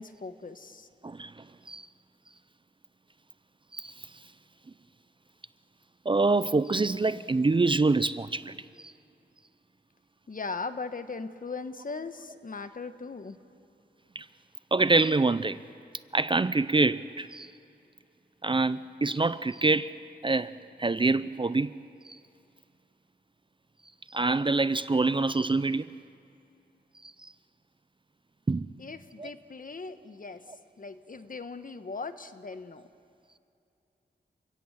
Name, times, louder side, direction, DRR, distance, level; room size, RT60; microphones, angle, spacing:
voice 1, 0.0-0.9 10.3-13.4 28.8-30.4 30.8-32.9, left 4 dB, 50° left, 1.2 m, -39 dB
voice 2, 1.0-1.9 3.7-4.1 6.1-8.9 14.1-14.3 14.7-15.6 16.1-17.5 18.4-20.0 20.2-21.7 22.0-22.2 24.1-25.9 27.0-27.3 28.5-28.7 29.2-29.3, right 3 dB, 30° right, 0.5 m, -26 dB
28.5 x 16.5 x 7.5 m
cardioid pair, 65°, 18 cm